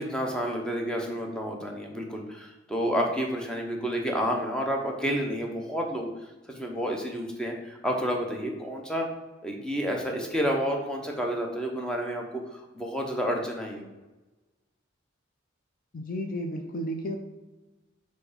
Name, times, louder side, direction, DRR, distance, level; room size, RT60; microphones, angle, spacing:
voice 1, 0.0-6.1 6.5-9.1 9.4-12.2 12.5-13.9, equal, 5° left, 1 dB, 0.8 m, -30 dB
voice 2, 15.9-17.2, equal, 45° left, 5 dB, 0.5 m, -32 dB
4.8 x 4.7 x 5.0 m, 1.1 s
head